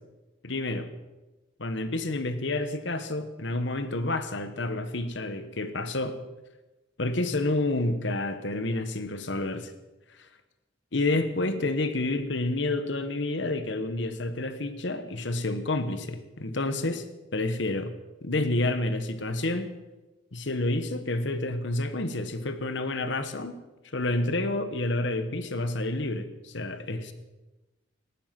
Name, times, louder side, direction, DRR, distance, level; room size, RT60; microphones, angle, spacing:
voice 1, 0.4-0.9 1.6-6.2 7.0-9.7 10.9-17.0 17.3-17.9 18.2-19.7 20.3-23.6 23.9-27.1, left 2 dB, 60° left, 10 dB, 1.2 m, -29 dB
18.5 x 10.0 x 6.0 m, 1.1 s
head